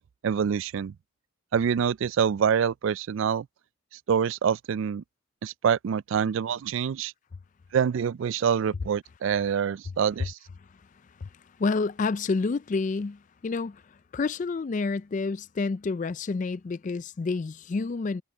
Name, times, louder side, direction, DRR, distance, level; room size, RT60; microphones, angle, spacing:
voice 1, 0.2-0.9 1.5-3.5 4.1-5.0 5.4-7.1 7.7-10.4, right 7 dB, 60° right, 0.3 m, -26 dB
voice 2, 11.2-18.2, left 4 dB, 35° left, 0.3 m, -29 dB
head